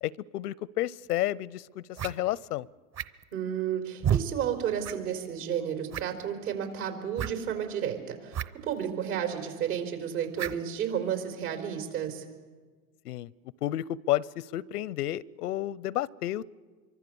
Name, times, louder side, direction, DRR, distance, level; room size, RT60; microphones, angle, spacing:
voice 1, 0.0-2.7 13.0-13.3 13.6-16.5, left 14 dB, 85° left, 24 dB, 0.7 m, -31 dB
sound 1, 1.1-1.2 1.9-2.1 2.9-3.3 4.0-4.3 4.8-5.0 5.2-5.3 5.9-6.2 7.2-7.3 8.3-8.5 8.7-8.8 10.3-10.6, right 9 dB, 35° right, 0.9 m, -30 dB
voice 2, 3.3-12.2, right 9 dB, 75° right, 5 dB, 4.8 m, -32 dB
26.0 x 24.5 x 7.0 m, 1.4 s
hypercardioid pair, 110°, 45 cm